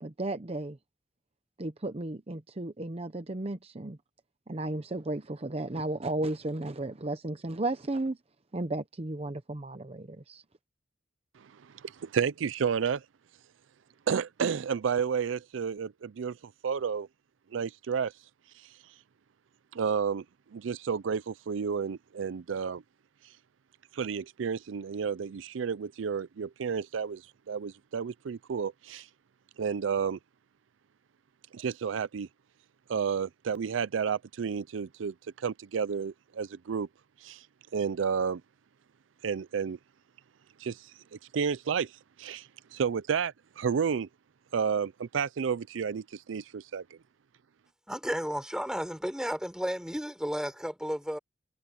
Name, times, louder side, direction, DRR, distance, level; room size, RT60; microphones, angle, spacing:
voice 1, 0.0-0.8 1.6-4.0 4.5-8.2 8.5-10.4, right 2 dB, 30° right, 0.8 m, -34 dB
voice 2, 11.4-13.0 14.1-17.1 17.5-18.1 18.5-18.7 19.7-20.2 20.5-22.8 23.9-29.1 29.6-30.2 31.5-32.3 32.9-36.9 37.2-37.5 37.7-38.4 39.2-39.8 40.6-44.1 44.5-46.8, right 6 dB, 85° right, 0.4 m, -31 dB
voice 3, 47.9-51.2, equal, 5° right, 4.1 m, -33 dB
head